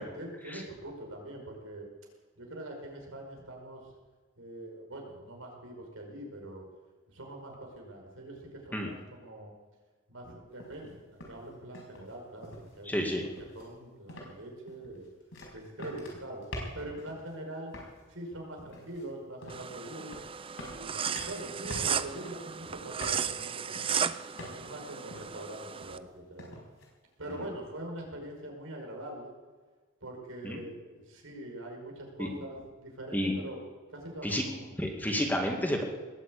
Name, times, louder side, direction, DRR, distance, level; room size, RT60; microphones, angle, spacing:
voice 1, 0.0-1.9 2.4-3.9 4.4-6.6 7.1-9.5 10.1-13.3 13.5-15.1 15.5-16.4 16.7-17.7 18.1-20.1 20.7-24.1 24.5-26.5 27.2-29.3 30.0-33.6 33.9-34.8, right 1 dB, 90° right, 1 dB, 5.2 m, -43 dB
sound 1, 10.6-10.9 11.2-12.1 12.4-12.8 13.2-13.7 14.1-14.4 14.7-17.3 17.7-18.0 18.7-19.0 19.4-19.7 20.0-20.3 20.6-22.6 23.0-23.4 23.7-24.1 24.4-24.8 25.1-25.4 25.8-26.1 26.4-26.9, left 1 dB, 75° left, 5.2 m, -45 dB
voice 2, 12.9-13.2 27.3-27.4 30.4-30.6 32.2-32.3 33.1-33.3 34.2-34.4 34.8-35.8, equal, 10° left, 1 dB, 2.2 m, -30 dB
sound 2, 19.5-26.0, right 7 dB, 25° right, 0.5 m, -35 dB
20.0 x 7.6 x 8.6 m, 1.4 s
head